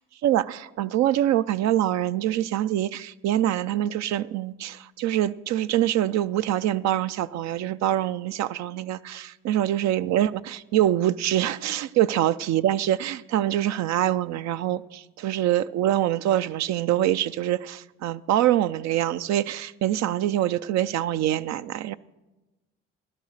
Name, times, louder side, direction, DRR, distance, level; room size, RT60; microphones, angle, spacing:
voice 1, 0.2-21.9, right 12 dB, 65° right, 0.5 m, -25 dB
15.5 x 11.5 x 6.5 m
supercardioid pair, 70°, 29 cm